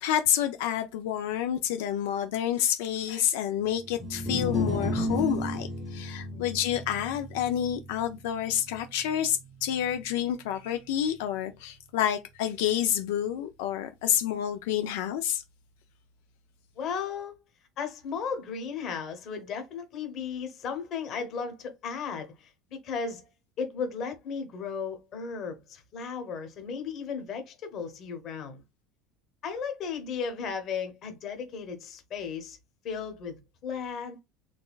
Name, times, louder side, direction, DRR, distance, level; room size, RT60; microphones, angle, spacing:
voice 1, 0.0-15.4, left 10 dB, 75° left, 0.4 m, -29 dB
sound 1, 3.9-10.2, left 1 dB, ahead, 0.8 m, -34 dB
voice 2, 16.8-17.3 17.8-23.2 23.6-28.6 29.4-32.6 32.8-33.4 33.6-34.2, left 6 dB, 35° left, 1.0 m, -35 dB
4.0 x 3.4 x 2.4 m
cardioid pair, 170°, 0 cm